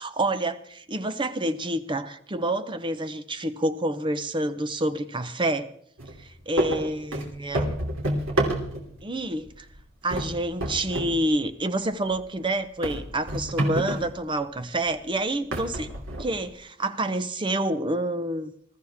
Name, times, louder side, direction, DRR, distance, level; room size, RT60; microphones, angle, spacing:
voice 1, 0.0-5.7 6.2-7.7 9.0-9.7 10.0-15.9 16.2-18.5, right 1 dB, 25° right, 11 dB, 0.8 m, -28 dB
sound 1, 6.0-6.2 6.6-9.0 9.5-9.8 10.1-11.2 11.5-11.6 12.1-12.2 12.8-14.2 14.9-15.0 15.5-16.5, right 1 dB, 80° right, 3.0 m, -28 dB
21.0 x 14.0 x 3.6 m, 0.66 s
head